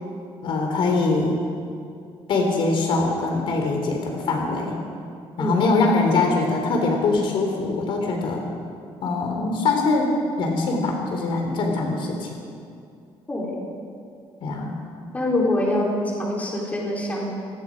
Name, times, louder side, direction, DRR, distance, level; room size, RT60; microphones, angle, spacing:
voice 1, 0.4-1.4 2.3-4.8 5.4-8.5 9.0-10.1 10.4-12.3 14.4-14.7, left 3 dB, 60° left, 2 dB, 3.4 m, -23 dB
voice 2, 15.1-17.3, left 1 dB, 15° left, -3 dB, 4.3 m, -24 dB
28.0 x 19.0 x 5.2 m, 2.5 s
cardioid pair, 175°, 10 cm